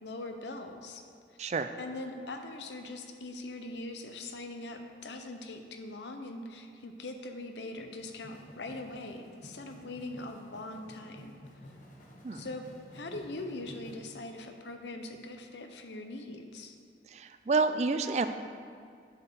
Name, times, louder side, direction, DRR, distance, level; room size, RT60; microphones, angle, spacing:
voice 1, 0.0-1.0 1.8-11.4 12.3-12.6 12.9-16.8, left 2 dB, 80° left, 5 dB, 0.8 m, -42 dB
voice 2, 1.4-1.7 12.2-12.5 17.1-18.3, right 4 dB, 40° right, 9 dB, 0.4 m, -29 dB
sound 1, 8.0-13.9, equal, 45° left, 1.2 m, -52 dB
8.5 x 4.5 x 6.9 m, 2.3 s
head